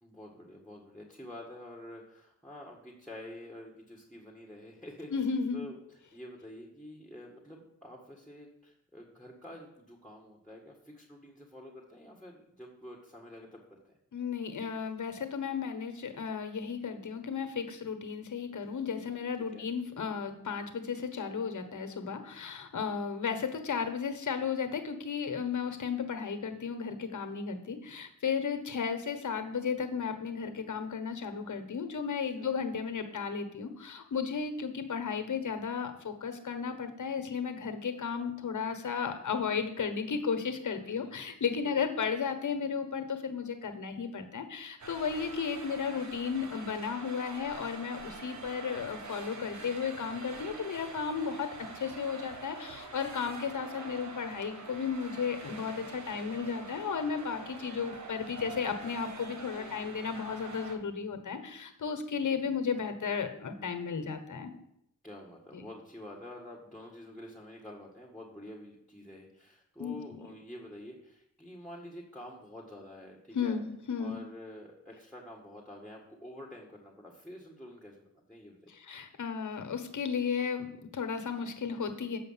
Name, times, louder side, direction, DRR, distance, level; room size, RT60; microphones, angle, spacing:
voice 1, 0.0-5.1 5.5-5.8 6.1-14.0 19.5-19.7 32.2-32.5 40.8-41.3 41.6-41.7 49.4-49.7 59.5-60.1 65.0-73.6 74.0-78.7, left 1 dB, ahead, -1 dB, 1.8 m, -48 dB
voice 2, 5.1-5.6 14.1-51.5 51.7-64.5 65.5-65.6 69.8-70.3 73.3-74.2 78.7-82.2, left 6 dB, 60° left, 7 dB, 1.3 m, -34 dB
sound 1, 44.8-60.8, right 3 dB, 55° right, 1.4 m, -45 dB
8.1 x 5.2 x 5.7 m, 0.77 s
cardioid pair, 50°, 34 cm